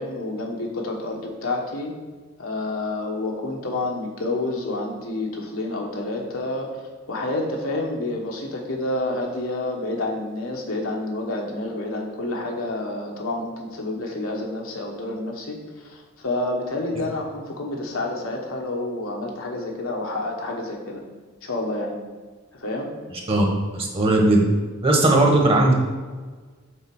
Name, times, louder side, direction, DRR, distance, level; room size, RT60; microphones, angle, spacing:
voice 1, 0.0-1.9 2.4-6.7 7.1-15.6 15.8-21.0 21.4-22.0 22.5-22.9, left 2 dB, 75° left, 0 dB, 1.3 m, -29 dB
voice 2, 23.7-24.4 24.8-25.7, right 2 dB, 25° right, 0 dB, 1.3 m, -17 dB
6.6 x 4.0 x 6.1 m, 1.4 s
head